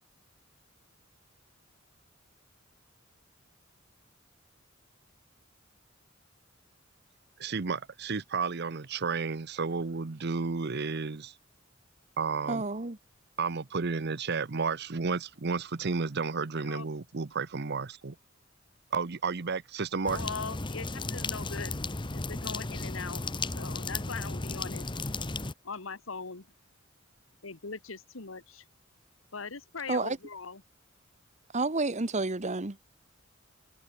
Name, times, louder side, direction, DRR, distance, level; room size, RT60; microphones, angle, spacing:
voice 1, 7.4-11.3 12.2-12.6 13.4-18.2 18.9-20.2, right 4 dB, 55° right, 0.8 m, -32 dB
voice 2, 12.5-13.0 29.9-30.2 31.5-32.8, right 3 dB, 35° right, 1.3 m, -30 dB
voice 3, 20.0-21.8 22.1-23.2 23.5-24.8 25.6-26.5 27.4-28.6 29.3-30.6, left 4 dB, 90° left, 1.7 m, -40 dB
sound 1, 20.1-25.5, left 3 dB, 25° left, 1.1 m, -35 dB
head